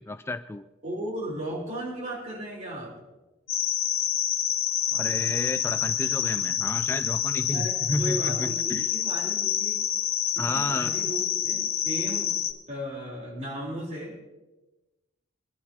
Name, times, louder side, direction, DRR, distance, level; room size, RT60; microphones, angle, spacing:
voice 1, 0.0-0.7 4.9-8.9 10.4-10.9, left 2 dB, 10° left, 11 dB, 0.3 m, -32 dB
voice 2, 0.8-2.9 7.5-9.8 10.3-12.3 12.7-14.1, equal, 35° right, -3 dB, 3.7 m, -35 dB
sound 1, 3.5-12.5, left 10 dB, 80° left, 1.2 m, -27 dB
23.5 x 11.5 x 2.8 m, 1.1 s
head